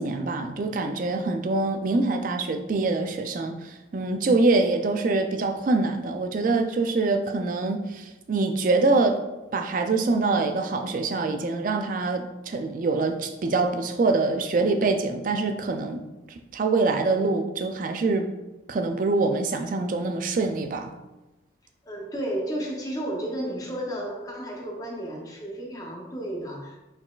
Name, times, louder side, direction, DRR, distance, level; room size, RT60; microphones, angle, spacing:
voice 1, 0.0-3.5 3.9-9.2 9.5-16.0 16.5-18.3 18.7-20.9, right 3 dB, 45° right, 5 dB, 0.3 m, -24 dB
voice 2, 21.9-26.8, right 1 dB, 20° left, 0 dB, 0.6 m, -32 dB
4.6 x 3.8 x 2.4 m, 1.1 s
head